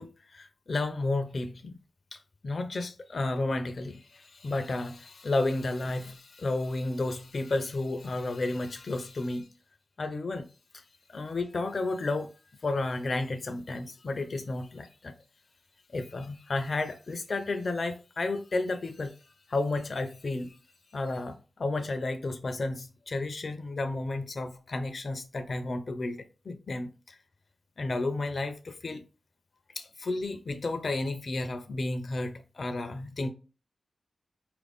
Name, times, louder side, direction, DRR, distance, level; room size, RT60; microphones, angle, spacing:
voice 1, 0.0-1.8 2.1-9.5 10.0-10.5 10.7-12.3 12.6-15.1 15.9-27.2 27.8-29.0 29.8-33.3, left 2 dB, 60° left, 0.4 m, -32 dB
4.5 x 2.5 x 3.4 m
cardioid pair, 55°, 0 cm